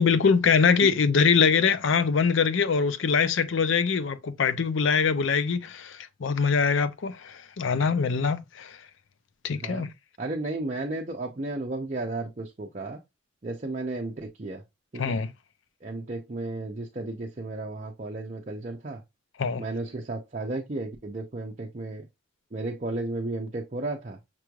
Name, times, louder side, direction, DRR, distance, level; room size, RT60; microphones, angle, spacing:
voice 1, 0.0-8.8 9.4-9.9 15.0-15.3 19.4-19.6, left 5 dB, 70° left, 0.5 m, -23 dB
voice 2, 10.2-13.0 13.4-14.6 14.9-15.2 15.8-19.0 19.6-22.1 22.5-24.2, right 2 dB, 35° right, 0.6 m, -33 dB
5.9 x 3.1 x 2.3 m
head